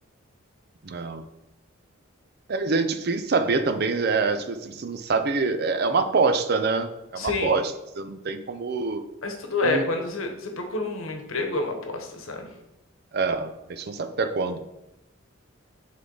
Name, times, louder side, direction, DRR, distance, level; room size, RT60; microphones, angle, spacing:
voice 1, 0.8-1.2 2.5-9.0 9.6-9.8 13.1-14.6, right 4 dB, 50° right, 9 dB, 0.4 m, -25 dB
voice 2, 7.2-7.6 9.2-12.5, left 3 dB, 80° left, 4 dB, 1.0 m, -28 dB
6.6 x 3.7 x 3.9 m, 0.91 s
head